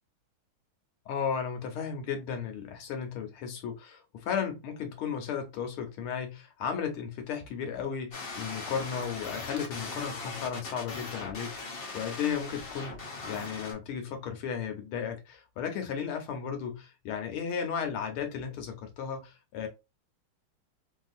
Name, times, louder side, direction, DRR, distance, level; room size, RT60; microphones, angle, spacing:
voice 1, 1.1-19.7, left 7 dB, 85° left, 1.8 m, -35 dB
sound 1, 8.1-13.7, left 3 dB, 65° left, 0.5 m, -40 dB
3.7 x 2.7 x 2.4 m
omnidirectional pair, 2.3 m